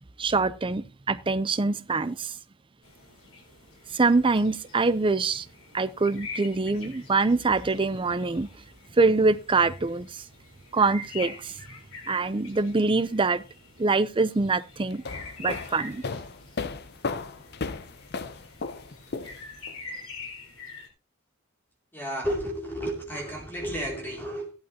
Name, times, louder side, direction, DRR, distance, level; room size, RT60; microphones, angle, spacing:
voice 1, 0.2-2.3 3.9-5.5 5.7-8.5 9.0-10.2 10.7-11.6 12.1-13.4 13.8-15.0 15.4-16.0, right 3 dB, 25° right, 0.5 m, -24 dB
sound 1, 2.8-20.9, left 3 dB, 90° left, 4.3 m, -45 dB
sound 2, 14.9-19.7, left 4 dB, 50° left, 0.7 m, -35 dB
voice 2, 21.9-24.5, equal, 10° left, 2.7 m, -32 dB
15.0 x 11.5 x 2.9 m
head